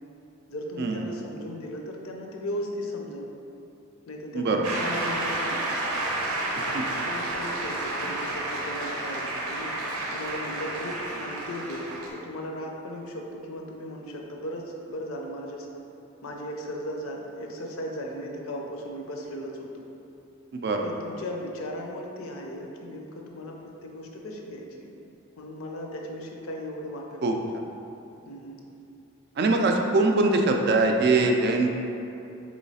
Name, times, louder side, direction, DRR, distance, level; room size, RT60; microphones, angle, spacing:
voice 1, 0.5-3.3 4.1-5.6 6.6-9.7 10.1-15.7 16.2-19.8 20.8-24.9 25.4-27.2 28.3-28.6, equal, 70° left, 0 dB, 0.5 m, -37 dB
voice 2, 4.3-4.7 6.7-6.8 20.5-20.9 27.2-27.4 29.4-31.7, right 2 dB, 45° right, 3 dB, 0.3 m, -22 dB
Shout / Cheering / Applause, 4.6-12.1, right 2 dB, 90° right, 0.6 m, -31 dB
3.9 x 3.1 x 4.1 m, 2.8 s
head